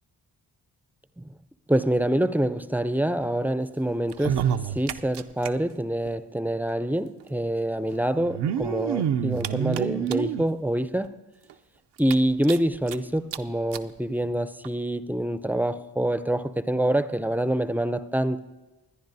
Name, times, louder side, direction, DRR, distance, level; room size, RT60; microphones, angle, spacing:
voice 1, 1.7-11.2 12.0-18.4, right 1 dB, 5° right, 13 dB, 0.5 m, -26 dB
sound 1, 4.1-5.5 5.8-5.9 6.1-6.2 7.2-7.3 8.2-10.5 11.0-11.1 11.5-11.6 12.0-13.0 13.3-13.4 13.7-13.9 14.6-14.7, right 9 dB, 70° right, 0.6 m, -28 dB
25.0 x 10.0 x 2.7 m, 1.1 s
supercardioid pair, 40°, 42 cm